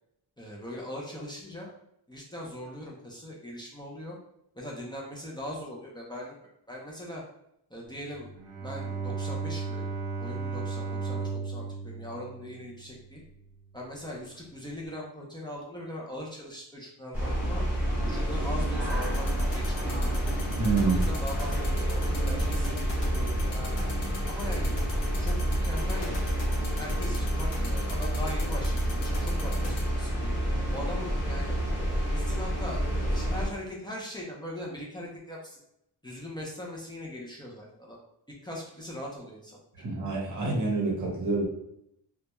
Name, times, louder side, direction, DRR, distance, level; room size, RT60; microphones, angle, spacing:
voice 1, 0.4-1.7 2.1-4.2 4.5-6.4 6.7-7.2 7.7-8.3 8.6-9.9 10.2-13.2 13.7-17.7 18.0-20.2 20.6-23.4 23.7-24.0 24.3-24.8 25.2-26.2 26.8-30.4 30.7-31.6 32.1-35.6 36.0-38.0 38.4-39.6, left 1 dB, 10° left, -4 dB, 0.4 m, -40 dB
Bowed string instrument, 8.1-13.4, right 4 dB, 80° right, 0.6 m, -35 dB
sound 1, 17.1-33.5, equal, 5° right, 1.0 m, -28 dB
sound 2, 18.9-29.8, left 3 dB, 85° left, 0.9 m, -41 dB
voice 2, 20.6-21.0 39.8-41.5, right 3 dB, 45° right, -2 dB, 0.8 m, -27 dB
2.2 x 2.1 x 2.9 m, 0.77 s
wide cardioid pair, 145°, 43 cm